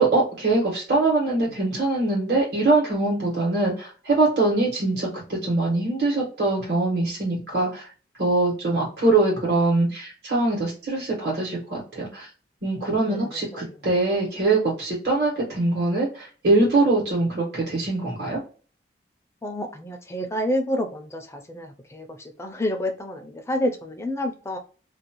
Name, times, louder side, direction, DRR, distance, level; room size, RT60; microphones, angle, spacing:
voice 1, 0.0-7.9 8.2-12.3 12.6-18.4, right 2 dB, 65° right, -4 dB, 1.2 m, -23 dB
voice 2, 13.1-13.9 19.4-24.6, left 1 dB, 15° left, 5 dB, 0.3 m, -29 dB
2.5 x 2.1 x 2.8 m, 0.38 s
head